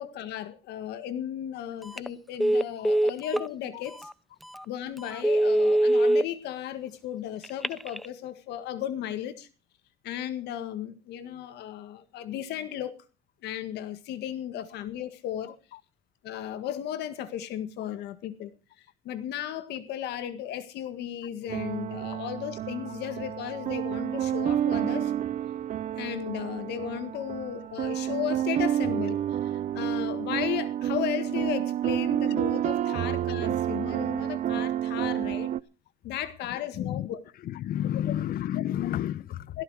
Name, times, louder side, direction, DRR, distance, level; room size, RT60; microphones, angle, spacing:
voice 1, 0.0-4.1 4.7-9.5 10.0-13.0 13.4-15.6 16.2-18.5 19.0-25.1 25.9-35.5 36.0-37.2 39.5-39.6, left 11 dB, 80° left, 1.8 m, -35 dB
Telephone, 1.8-2.1 2.4-3.5 4.0-4.1 4.5-4.7 5.1-6.2 7.4-8.1, right 1 dB, ahead, 0.7 m, -23 dB
sound 1, 21.5-35.6, right 11 dB, 45° right, 0.7 m, -29 dB
voice 2, 36.7-37.1 37.4-39.6, left 11 dB, 60° left, 0.8 m, -31 dB
16.5 x 13.5 x 4.8 m
cardioid pair, 110°, 17 cm